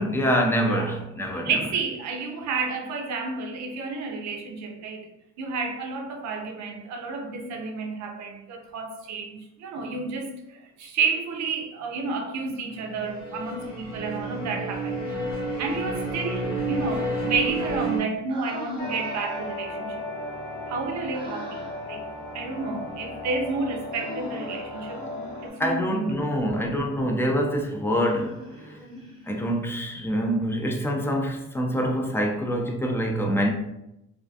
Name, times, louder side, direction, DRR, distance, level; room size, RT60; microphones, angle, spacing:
voice 1, 0.0-1.5 25.6-28.4 29.3-33.5, equal, 10° left, 2 dB, 0.4 m, -25 dB
voice 2, 0.7-1.0 1.3-15.0 15.6-20.0 20.7-22.0 22.3-25.0 25.4-26.3, right 4 dB, 65° right, 3 dB, 0.5 m, -31 dB
sound 1, 12.7-18.0, right 2 dB, 45° left, 0.9 m, -30 dB
Human voice, 14.9-15.8 18.3-19.6 21.1-21.9 23.9-25.7 28.0-29.6, right 1 dB, 15° right, 0.8 m, -42 dB
sound 2, 18.8-25.5, left 1 dB, 80° left, 0.7 m, -36 dB
2.4 x 2.2 x 2.6 m, 0.86 s
cardioid pair, 90°, 30 cm